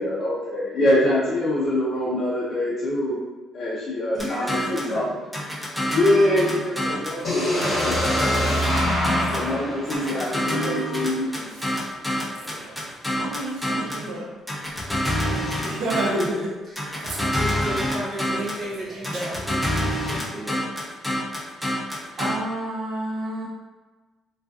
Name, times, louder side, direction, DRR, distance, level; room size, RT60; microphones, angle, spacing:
voice 1, 0.0-3.2 3.5-5.0 6.0-8.5 8.8-11.3, left 1 dB, 50° left, -7 dB, 0.5 m, -24 dB
voice 2, 4.1-5.1 5.6-5.7 15.2-16.3 16.6-17.0 17.4-20.7, right 1 dB, 30° right, -7 dB, 1.0 m, -34 dB
sound 1, 4.2-4.9 5.3-7.2 7.6-9.5 9.9-14.1 14.5-16.4 16.8-18.6 19.0-22.4, equal, 5° left, 0.5 m, -27 dB
sound 2, 7.2-11.2, equal, 30° left, 0.9 m, -25 dB
Laughter, 7.2-7.3 7.6-14.3 14.6-14.7 15.0-15.2 15.6-16.5 16.8-17.6 18.1-19.5, right 1 dB, 85° right, 0.5 m, -34 dB
voice 3, 13.2-14.2 21.8-23.5, right 1 dB, 60° right, -5 dB, 0.8 m, -32 dB
2.4 x 2.3 x 2.3 m, 1.3 s
cardioid pair, 110°, 0 cm